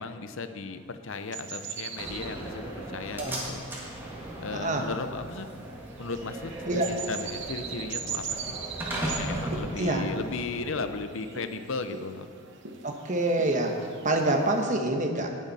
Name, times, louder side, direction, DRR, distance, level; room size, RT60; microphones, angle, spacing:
voice 1, 0.0-3.6 4.4-5.5 6.0-6.5 6.9-8.6 9.2-12.3, left 3 dB, 65° left, 9 dB, 0.7 m, -36 dB
sound 1, 1.1-14.7, right 6 dB, 55° right, 0.9 m, -41 dB
Slam, 2.0-11.0, right 1 dB, 10° right, 1.8 m, -37 dB
voice 2, 4.5-4.8 6.7-6.9 9.8-10.1 12.8-13.7 14.0-15.3, right 2 dB, 35° right, 3 dB, 1.1 m, -26 dB
18.5 x 7.5 x 4.2 m, 2.2 s
head